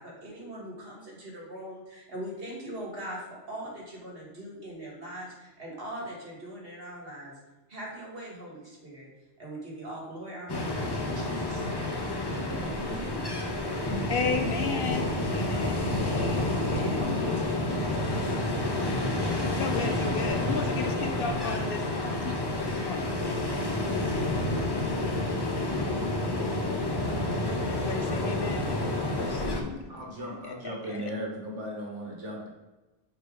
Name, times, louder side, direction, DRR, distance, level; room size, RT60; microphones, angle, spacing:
voice 1, 0.0-7.3 7.7-9.1 9.4-11.9 12.3-13.2, right 1 dB, 55° right, -3 dB, 2.4 m, -41 dB
Ocean, 10.5-29.6, left 1 dB, 25° left, 0.8 m, -29 dB
voice 2, 14.1-17.2 19.5-23.2 27.6-30.0 30.3-31.1, left 5 dB, 60° left, 6 dB, 0.7 m, -35 dB
voice 3, 29.9-32.5, equal, 80° right, 0 dB, 1.7 m, -37 dB
6.2 x 4.7 x 5.0 m, 1.1 s
omnidirectional pair, 1.2 m